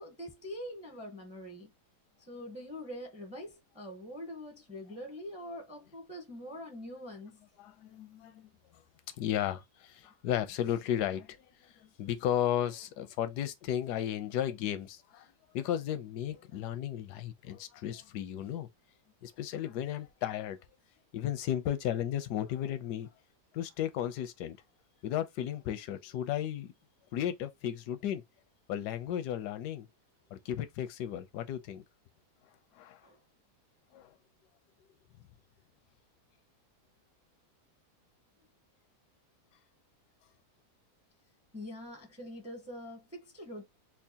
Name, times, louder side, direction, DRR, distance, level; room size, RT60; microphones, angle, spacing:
voice 1, 0.0-1.7 2.2-7.4 33.0-33.2 41.5-43.7, left 1 dB, 5° right, 0.5 m, -44 dB
voice 2, 7.6-8.5 9.2-18.7 19.2-20.6 21.1-23.1 23.5-24.6 25.0-26.7 27.1-28.2 28.7-29.9 30.3-31.8 32.7-33.0 33.9-34.1, left 11 dB, 85° left, 1.2 m, -34 dB
4.6 x 2.2 x 2.7 m
omnidirectional pair, 1.7 m